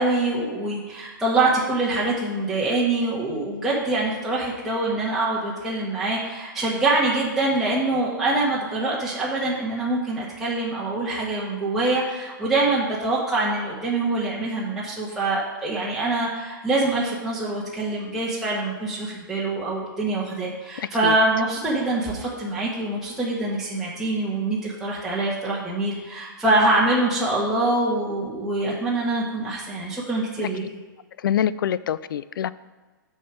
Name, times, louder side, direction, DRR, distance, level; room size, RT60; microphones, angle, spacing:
voice 1, 0.0-30.6, right 2 dB, 5° right, -7 dB, 1.5 m, -24 dB
voice 2, 31.2-32.5, left 9 dB, 75° left, 17 dB, 0.4 m, -25 dB
6.9 x 4.8 x 6.1 m, 1.3 s
hypercardioid pair, 130°, 11 cm